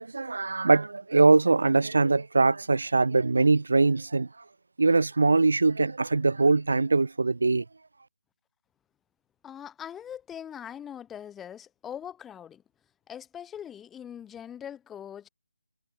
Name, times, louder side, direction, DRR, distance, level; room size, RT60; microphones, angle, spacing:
voice 1, 0.0-4.3 4.8-7.6, right 3 dB, 70° right, 1.0 m, -22 dB
voice 2, 9.4-12.6 13.1-15.3, left 9 dB, 5° left, 6.1 m, -41 dB
figure-of-eight pair, 170°, 0 cm